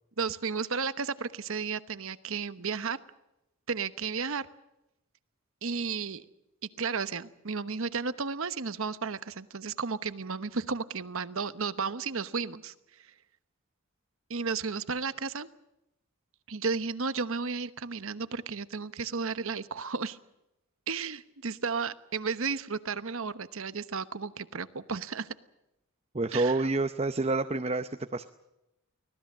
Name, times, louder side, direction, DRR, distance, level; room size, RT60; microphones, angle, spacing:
voice 1, 0.2-3.0 3.7-4.5 5.6-6.2 6.8-12.7 14.3-15.5 16.5-20.2 20.9-25.3 26.3-26.5, right 5 dB, 65° right, 13 dB, 1.0 m, -33 dB
voice 2, 26.1-28.2, right 2 dB, 30° right, 8 dB, 0.7 m, -28 dB
24.5 x 18.0 x 7.4 m, 0.90 s
head